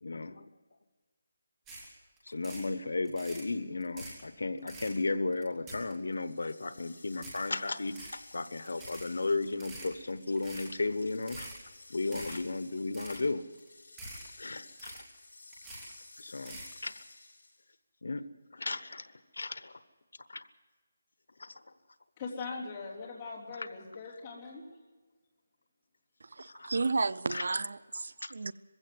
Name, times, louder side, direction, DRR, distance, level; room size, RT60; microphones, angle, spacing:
voice 1, 0.0-0.5 2.3-7.9 8.3-11.5 11.9-13.4 14.4-15.0 16.2-17.0 18.0-18.2 18.5-19.8 20.3-20.5 21.4-21.6 23.6-23.7 26.4-26.7 27.3-27.4 28.2-28.3, left 3 dB, 80° left, 13 dB, 1.1 m, -34 dB
sound 1, 1.7-1.9 2.2-2.7 3.0-3.5 3.8-4.2 4.6-4.9 5.3-6.1 6.5-6.6 7.1-7.5 7.8-8.2 8.6-9.1 9.5-9.9 10.4-10.7 11.1-11.6 12.0-12.4 12.8-13.2 13.5-13.7 14.0-14.3 14.6-15.2 15.5-15.9 16.3-16.7, right 2 dB, 10° right, 3.0 m, -46 dB
sound 2, 6.1-17.7, left 3 dB, 60° left, 6.7 m, -55 dB
voice 2, 22.2-24.6, left 4 dB, 15° left, -6 dB, 3.4 m, -41 dB
voice 3, 26.4-28.5, right 3 dB, 65° right, 18 dB, 0.6 m, -32 dB
21.5 x 16.0 x 7.8 m, 1.4 s
hypercardioid pair, 175°, 0 cm